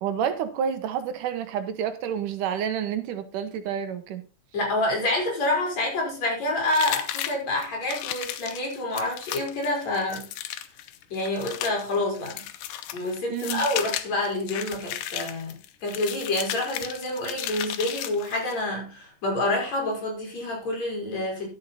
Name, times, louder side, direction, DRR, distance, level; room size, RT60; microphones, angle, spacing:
voice 1, 0.0-4.2 13.3-13.7, right 8 dB, 80° right, 2.7 m, -29 dB
voice 2, 4.5-10.3 11.1-12.5 12.9-15.6 15.8-21.5, left 2 dB, 55° left, 5.5 m, -28 dB
sound 1, 6.7-18.6, left 12 dB, 90° left, 2.4 m, -34 dB
12.0 x 7.4 x 4.1 m
omnidirectional pair, 3.7 m